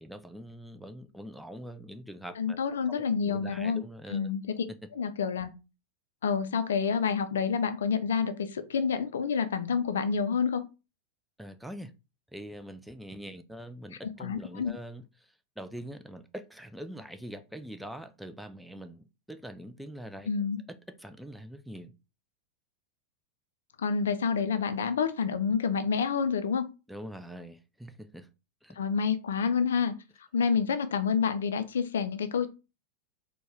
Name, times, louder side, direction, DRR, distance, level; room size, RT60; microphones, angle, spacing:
voice 1, 0.0-2.6 2.9-4.3 11.4-11.9 12.3-20.3 20.7-21.9 26.9-28.3 28.6-28.8, equal, ahead, 0.4 m, -44 dB
voice 2, 2.4-3.8 4.1-4.6 5.0-5.5 6.2-10.6 14.0-14.7 20.3-20.6 23.8-26.6 28.8-29.9 30.3-32.5, left 6 dB, 65° left, 0.4 m, -28 dB
4.2 x 2.3 x 3.3 m
figure-of-eight pair, 90°, 0 cm